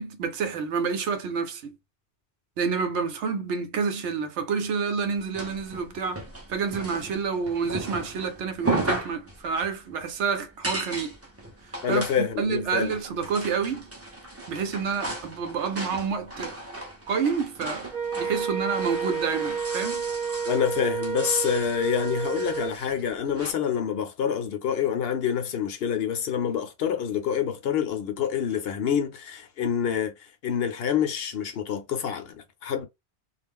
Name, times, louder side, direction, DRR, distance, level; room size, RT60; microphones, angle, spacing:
voice 1, 0.0-1.7 2.6-6.2 6.5-11.2 11.9-13.9 14.5-16.6 17.1-20.1, right 5 dB, 85° right, 1.0 m, -29 dB
sound 1, 5.0-23.5, right 2 dB, 15° right, 0.6 m, -36 dB
voice 2, 11.8-13.0 20.5-32.9, left 8 dB, 65° left, 0.8 m, -27 dB
Wind instrument woodwind instrument, 17.9-22.8, right 6 dB, 40° right, 1.0 m, -30 dB
2.4 x 2.0 x 3.5 m
omnidirectional pair, 1.2 m